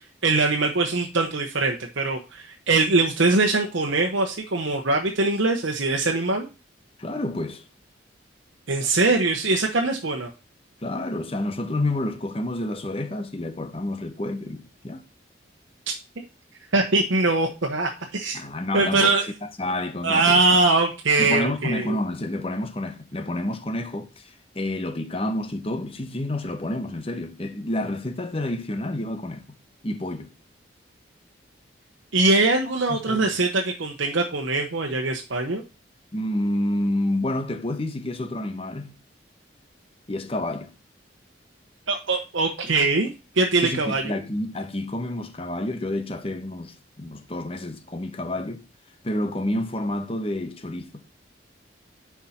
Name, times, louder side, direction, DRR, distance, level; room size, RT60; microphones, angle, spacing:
voice 1, 0.2-6.5 8.7-10.3 16.7-18.4 18.7-19.2 20.0-22.0 32.1-35.6 41.9-44.1, right 3 dB, 85° right, 1.0 m, -22 dB
voice 2, 7.0-7.6 10.8-15.0 18.3-19.1 19.6-20.6 21.2-29.5 29.8-30.3 32.9-33.3 36.1-38.9 40.1-40.7 43.6-48.7 49.0-51.0, left 1 dB, 30° left, 0.9 m, -29 dB
9.6 x 4.8 x 4.3 m
head